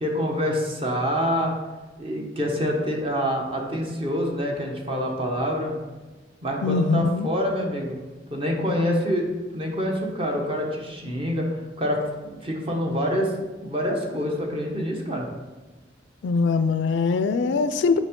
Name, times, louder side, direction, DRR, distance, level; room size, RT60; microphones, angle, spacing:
voice 1, 0.0-1.5 2.0-5.7 6.4-8.0 8.3-9.3 9.5-13.3 13.6-15.3, equal, 30° right, 0 dB, 1.0 m, -26 dB
voice 2, 6.6-7.3 16.2-18.0, left 4 dB, 70° left, 12 dB, 0.3 m, -22 dB
7.3 x 5.1 x 3.7 m, 1.2 s
head